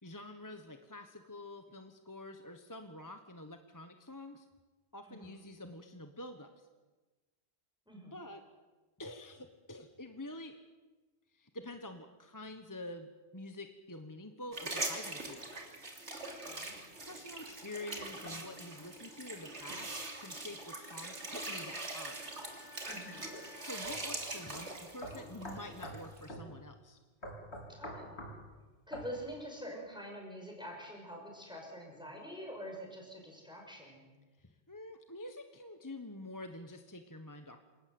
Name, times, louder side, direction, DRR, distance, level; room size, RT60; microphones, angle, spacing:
voice 1, 0.0-4.5 4.9-6.7 8.1-8.4 9.0-10.5 11.3-15.5 17.0-22.2 23.6-27.0 34.4-37.6, left 1 dB, 15° left, 6 dB, 1.3 m, -47 dB
voice 2, 5.0-5.4 7.9-8.2 16.3-16.7 22.9-23.3 27.7-28.2 28.9-34.1, equal, 5° right, 0 dB, 5.6 m, -46 dB
sound 1, 14.5-26.3, right 2 dB, 85° right, 3.5 m, -42 dB
Wind instrument woodwind instrument, 17.9-25.9, left 3 dB, 90° left, 4.6 m, -59 dB
sound 2, 23.8-24.0 24.5-24.6 25.0-26.0 26.3-26.5 27.2-28.4 28.9-29.1, equal, 75° left, 4.9 m, -44 dB
27.5 x 18.5 x 7.9 m, 1.2 s
omnidirectional pair, 1.1 m